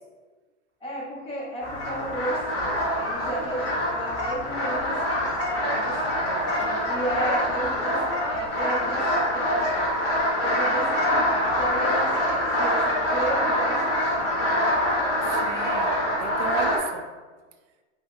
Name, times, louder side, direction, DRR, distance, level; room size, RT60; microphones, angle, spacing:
voice 1, 0.8-6.0 6.6-9.9 10.4-14.6, right 1 dB, 15° left, -5 dB, 0.7 m, -33 dB
sound 1, 1.6-16.8, equal, 40° left, 1.0 m, -25 dB
voice 2, 6.2-6.5 15.4-17.1, right 6 dB, 75° right, 6 dB, 0.5 m, -35 dB
5.3 x 2.1 x 2.3 m, 1.3 s
supercardioid pair, 135°, 36 cm